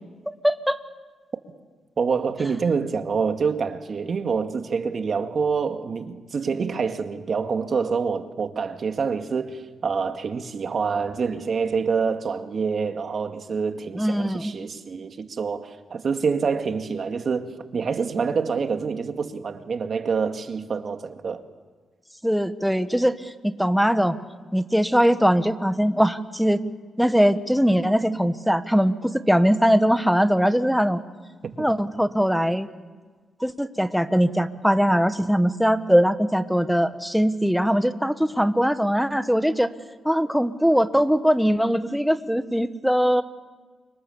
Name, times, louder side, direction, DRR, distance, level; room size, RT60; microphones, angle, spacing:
voice 1, 0.4-0.8 13.9-14.5 22.2-24.2 24.5-26.6 27.0-31.0 31.6-32.7 33.4-39.7 40.0-43.2, equal, ahead, 1.5 m, -21 dB
voice 2, 2.0-21.4 31.4-31.7, right 5 dB, 55° right, 2.0 m, -26 dB
29.5 x 25.5 x 7.2 m
cardioid pair, 80°, 0 cm